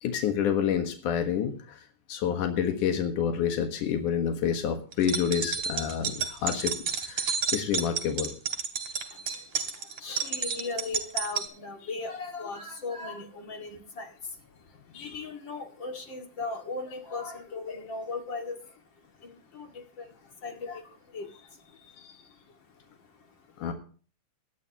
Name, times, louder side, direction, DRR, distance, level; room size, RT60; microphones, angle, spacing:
voice 1, 0.0-1.8 2.1-6.7 7.0-8.3 14.9-15.2 22.0-22.2 23.6-23.7, left 8 dB, 85° left, 5 dB, 3.0 m, -28 dB
sound 1, 4.9-11.5, right 6 dB, 55° right, 3.1 m, -31 dB
voice 2, 9.1-23.7, left 3 dB, 40° left, 3 dB, 2.7 m, -39 dB
18.0 x 11.5 x 3.0 m, 0.39 s
omnidirectional pair, 3.5 m